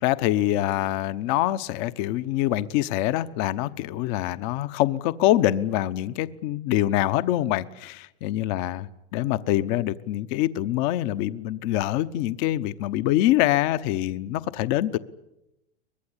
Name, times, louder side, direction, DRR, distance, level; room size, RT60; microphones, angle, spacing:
voice 1, 0.0-15.0, left 14 dB, 50° left, 13 dB, 1.1 m, -25 dB
24.0 x 20.5 x 10.0 m, 0.89 s
supercardioid pair, 135°, 32 cm